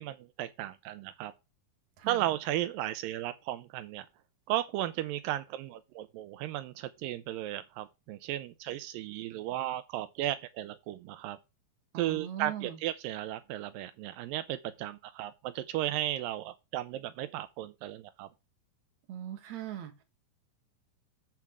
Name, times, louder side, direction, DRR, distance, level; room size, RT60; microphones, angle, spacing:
voice 1, 0.0-1.3 2.1-4.1 4.5-11.4 12.0-18.3, right 14 dB, 85° right, 2.4 m, -35 dB
voice 2, 11.9-12.8 19.1-19.9, right 10 dB, 60° right, 2.5 m, -40 dB
10.5 x 3.6 x 7.3 m
omnidirectional pair, 4.0 m